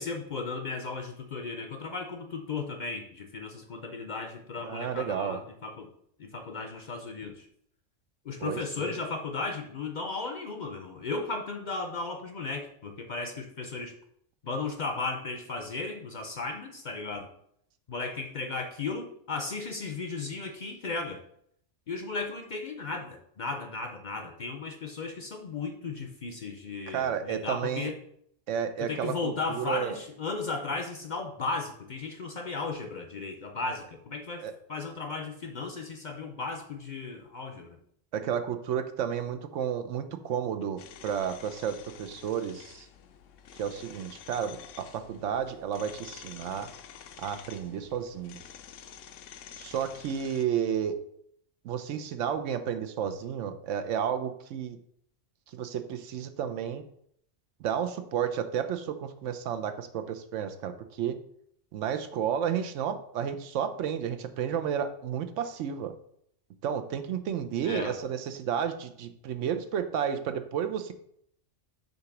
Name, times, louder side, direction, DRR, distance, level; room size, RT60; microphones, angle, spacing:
voice 1, 0.0-5.9 6.2-7.5 8.3-13.9 14.4-17.3 17.9-21.2 21.9-28.0 28.8-37.8 67.6-68.0, left 3 dB, 50° left, 5 dB, 0.6 m, -35 dB
voice 2, 4.6-5.4 8.4-9.0 26.9-27.9 28.5-30.0 34.4-34.5 38.1-42.9 43.5-46.7 47.2-48.4 49.6-51.0 51.6-54.8 55.5-56.8 57.6-61.2 61.7-65.9 66.6-70.9, right 8 dB, 80° right, 9 dB, 0.9 m, -32 dB
sound 1, 40.8-50.5, left 9 dB, 85° left, 0.9 m, -49 dB
6.6 x 2.9 x 5.8 m, 0.69 s
omnidirectional pair, 1.3 m